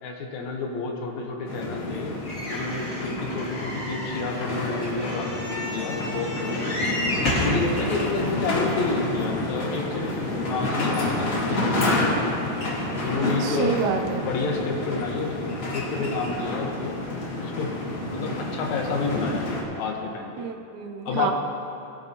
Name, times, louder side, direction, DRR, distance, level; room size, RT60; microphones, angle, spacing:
voice 1, 0.0-2.2 2.5-6.9 7.4-12.3 13.0-13.8 14.1-15.4 15.7-17.0 17.4-17.8 18.1-19.5 19.8-20.3 21.0-21.3, left 3 dB, 70° left, 1 dB, 2.3 m, -30 dB
sound 1, 1.5-19.6, left 2 dB, 45° left, 1.4 m, -29 dB
sound 2, 2.3-7.6 8.3-8.4 8.7-8.8, left 1 dB, 25° left, 1.8 m, -31 dB
voice 2, 13.4-14.3 20.4-21.3, right 6 dB, 75° right, 4 dB, 1.8 m, -28 dB
17.0 x 10.5 x 2.9 m, 2.7 s
omnidirectional pair, 3.4 m